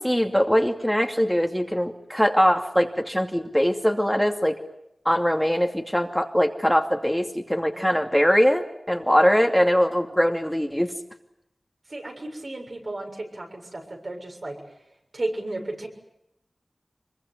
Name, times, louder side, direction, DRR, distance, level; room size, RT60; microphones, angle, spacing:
voice 1, 0.0-4.6 5.0-10.9, equal, 5° left, 3 dB, 2.6 m, -22 dB
voice 2, 11.9-14.7 15.1-15.9, right 2 dB, 65° right, 2 dB, 7.0 m, -34 dB
25.0 x 22.5 x 9.7 m, 0.84 s
wide cardioid pair, 45°, 0 cm